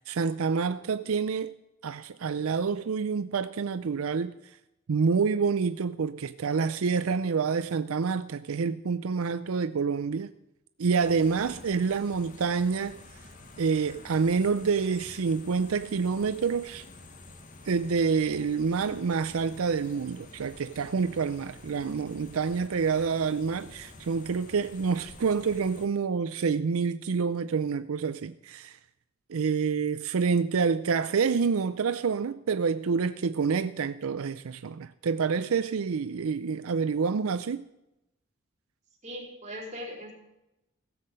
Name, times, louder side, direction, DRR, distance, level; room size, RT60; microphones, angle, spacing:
voice 1, 0.1-1.5 1.8-4.6 4.9-10.3 10.8-13.0 13.6-16.8 17.6-28.8 29.3-37.6, right 5 dB, 80° right, 0.5 m, -27 dB
sound 1, 11.0-25.9, left 2 dB, 40° left, 1.3 m, -49 dB
voice 2, 39.0-40.1, equal, 35° right, 4.1 m, -40 dB
16.5 x 7.5 x 6.7 m
head